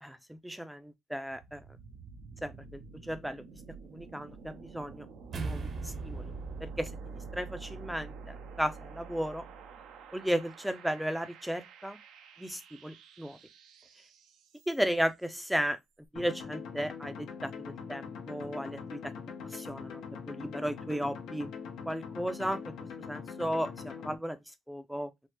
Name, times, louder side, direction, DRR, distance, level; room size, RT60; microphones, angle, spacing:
voice 1, 0.0-1.6 2.4-3.4 3.9-5.1 5.3-6.3 6.6-6.9 7.3-9.4 10.1-12.0 12.4-13.4 14.7-15.8 16.1-19.1 19.5-21.5 21.9-22.7 23.1-24.4 24.7-25.1, equal, 5° right, 0.4 m, -35 dB
sound 1, 1.3-15.1, right 6 dB, 85° right, 0.5 m, -51 dB
sound 2, 5.3-9.9, right 3 dB, 55° right, 0.8 m, -41 dB
sound 3, 16.2-24.2, left 6 dB, 85° left, 0.7 m, -42 dB
3.3 x 2.0 x 2.8 m
cardioid pair, 90°, 0 cm